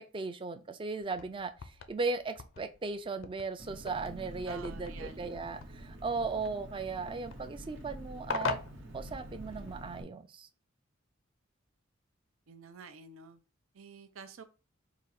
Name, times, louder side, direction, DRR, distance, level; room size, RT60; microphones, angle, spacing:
voice 1, 0.1-8.6 8.9-10.5, right 4 dB, 25° right, 8 dB, 0.4 m, -37 dB
sound 1, 1.0-9.7, left 5 dB, 65° left, 0.5 m, -43 dB
Engine, 3.6-10.0, right 1 dB, 65° right, 1.0 m, -47 dB
voice 2, 4.5-5.3 12.5-13.4 13.7-14.4, right 5 dB, 85° right, 8 dB, 0.6 m, -49 dB
4.9 x 2.4 x 4.1 m, 0.34 s
head